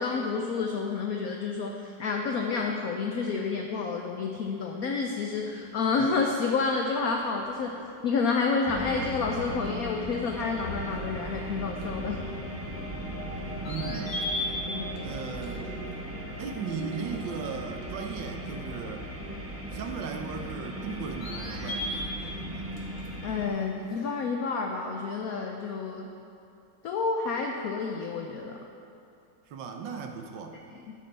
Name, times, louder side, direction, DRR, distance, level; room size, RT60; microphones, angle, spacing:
voice 1, 0.0-7.7 8.0-12.2 14.7-15.2 23.2-26.1 26.8-28.6 30.9-31.0, left 4 dB, 65° left, 2 dB, 0.9 m, -29 dB
sound 1, 5.4-24.1, left 2 dB, 80° left, 2.3 m, -42 dB
sound 2, 8.7-23.5, right 1 dB, 10° right, 0.7 m, -37 dB
voice 2, 13.6-14.2 15.0-15.7 16.4-19.1 19.7-22.7 29.5-30.6, right 5 dB, 80° right, 5 dB, 1.5 m, -37 dB
13.5 x 9.3 x 3.4 m, 2.6 s
omnidirectional pair, 2.0 m